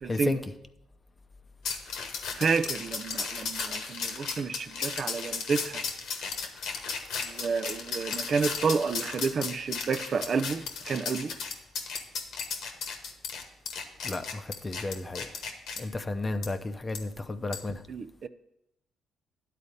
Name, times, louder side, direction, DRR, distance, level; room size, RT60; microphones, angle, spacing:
voice 1, 0.0-0.4 2.4-5.8 7.2-11.3 17.9-18.3, right 5 dB, 50° right, 12 dB, 0.4 m, -30 dB
sound 1, 1.6-15.8 16.4-16.5 16.9-17.0 17.5-17.7, left 5 dB, 85° left, 1.2 m, -35 dB
voice 2, 14.0-15.2 15.8-17.8, left 2 dB, 25° left, 9 dB, 0.6 m, -33 dB
11.0 x 4.2 x 6.6 m, 0.83 s
cardioid pair, 90°, 0 cm